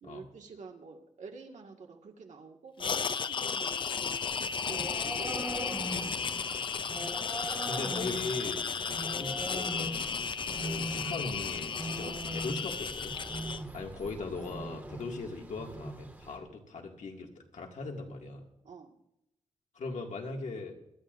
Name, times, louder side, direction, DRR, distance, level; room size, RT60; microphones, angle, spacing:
voice 1, 0.0-6.1 13.4-13.7 18.6-19.0, right 4 dB, 75° right, 2 dB, 1.9 m, -49 dB
sound 1, 2.8-13.6, left 6 dB, 40° left, 0.4 m, -34 dB
sound 2, 4.3-16.4, right 1 dB, 15° right, 1.9 m, -41 dB
voice 2, 7.7-13.2 13.7-18.4 19.7-20.7, left 3 dB, 75° left, 1 dB, 2.1 m, -40 dB
23.5 x 12.5 x 2.6 m, 0.84 s
wide cardioid pair, 155°, 13 cm